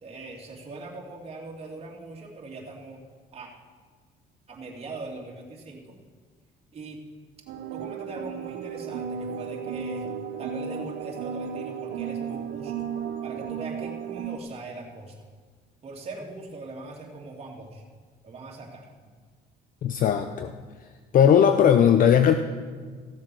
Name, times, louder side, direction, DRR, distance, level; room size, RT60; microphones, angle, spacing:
voice 1, 0.0-3.0 3.3-3.5 4.5-6.0 6.7-7.0 7.7-10.1 10.4-12.7 13.2-15.2 15.8-17.8 18.2-19.1, right 3 dB, 35° right, -1 dB, 2.6 m, -41 dB
sound 1, 7.5-14.4, right 7 dB, 85° right, 0.8 m, -34 dB
voice 2, 19.8-20.5 21.1-22.4, left 8 dB, 55° left, 8 dB, 0.6 m, -18 dB
15.0 x 7.4 x 6.2 m, 1.5 s
cardioid pair, 110°, 17 cm